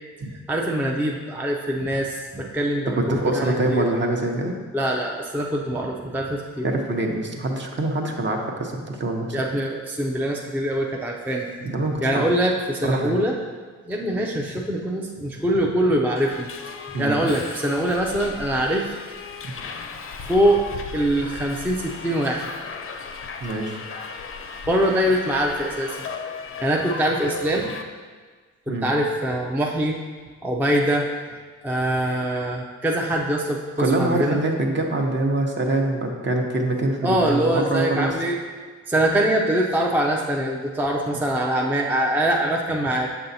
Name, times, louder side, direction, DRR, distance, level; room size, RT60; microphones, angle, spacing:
voice 1, 0.3-3.9 4.7-6.7 9.3-11.5 12.0-13.3 13.9-16.5 17.0-18.9 20.3-20.6 20.9-22.5 24.7-25.9 26.6-27.7 28.7-30.0 30.4-31.1 31.6-34.4 37.0-38.4 38.9-43.1, right 1 dB, 5° right, 0 dB, 0.5 m, -23 dB
voice 2, 3.0-4.6 6.6-9.4 11.6-12.3 12.8-13.2 16.9-17.2 19.4-19.5 23.4-23.8 28.7-28.9 33.8-38.1, right 2 dB, 40° right, 2 dB, 0.9 m, -24 dB
Subway metro underground, 16.2-27.8, left 4 dB, 45° left, 0.6 m, -36 dB
6.9 x 5.5 x 2.7 m, 1.5 s
cardioid pair, 90°, 30 cm